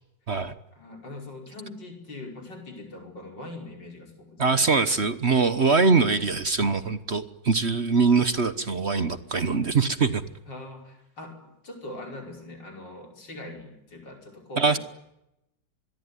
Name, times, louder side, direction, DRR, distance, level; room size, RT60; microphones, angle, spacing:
voice 1, 0.7-5.0 10.5-14.8, left 2 dB, 85° left, 3 dB, 6.0 m, -42 dB
voice 2, 4.4-10.2 14.6-14.8, right 4 dB, 40° right, 12 dB, 1.3 m, -23 dB
25.5 x 22.0 x 9.8 m, 0.87 s
omnidirectional pair, 1.9 m